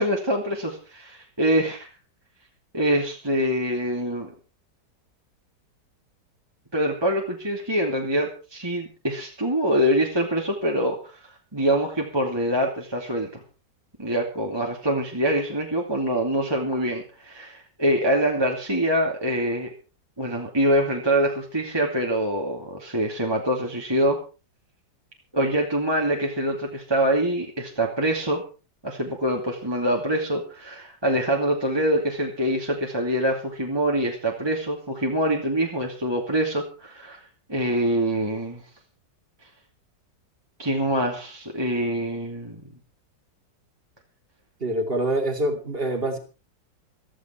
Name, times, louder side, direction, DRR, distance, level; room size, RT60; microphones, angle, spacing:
voice 1, 0.0-1.9 2.7-4.3 6.7-11.0 11.5-13.4 14.0-19.7 20.2-24.2 25.3-28.4 28.8-37.2 37.5-38.6 40.6-42.6, equal, 15° right, 2.6 m, -24 dB
voice 2, 44.6-46.2, right 1 dB, 30° right, 3.0 m, -25 dB
15.5 x 14.5 x 4.5 m
omnidirectional pair, 1.9 m